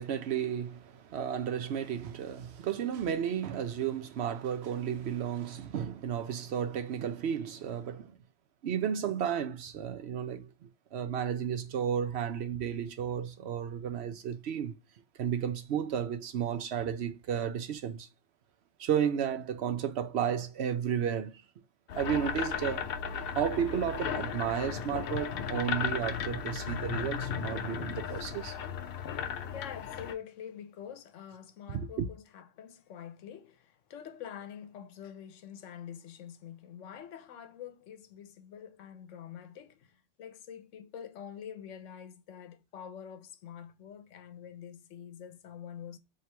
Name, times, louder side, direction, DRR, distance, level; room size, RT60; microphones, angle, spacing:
voice 1, 0.0-8.1 8.6-14.8 15.2-18.1 18.8-21.4 22.0-22.9 23.4-28.6 31.7-32.0, right 8 dB, 65° right, 0.8 m, -33 dB
sound 1, 21.9-30.1, left 7 dB, 60° left, 0.7 m, -35 dB
voice 2, 29.5-46.0, left 8 dB, 85° left, 1.0 m, -46 dB
4.4 x 2.8 x 3.2 m
omnidirectional pair, 1.3 m